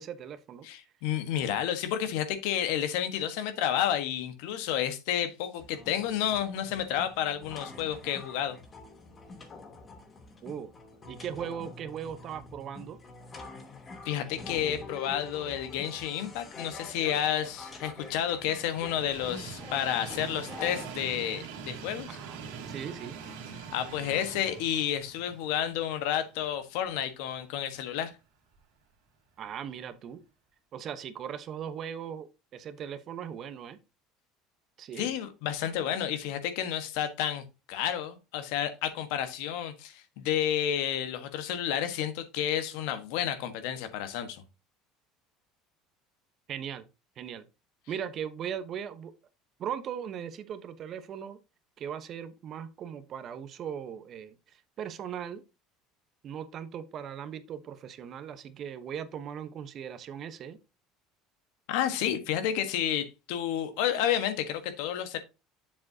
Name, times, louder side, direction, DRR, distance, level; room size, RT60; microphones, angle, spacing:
voice 1, 0.0-0.7 10.4-10.7 11.1-13.0 22.1-22.4 22.7-23.2 29.4-30.2 30.7-33.8 34.8-35.1 46.5-46.9 47.2-47.5 47.9-49.1 49.6-51.4 51.8-55.4 56.2-60.6, right 8 dB, 50° right, 1.1 m, -39 dB
voice 2, 0.6-8.6 14.0-22.2 23.7-28.1 35.0-44.4 61.7-65.2, left 10 dB, 75° left, 1.4 m, -31 dB
sound 1, 5.6-20.9, left 3 dB, 30° left, 2.7 m, -46 dB
Train, 16.8-26.9 27.4-27.5 28.6-28.7, right 6 dB, 85° right, 2.3 m, -44 dB
7.4 x 7.3 x 2.8 m
supercardioid pair, 90°, 0 cm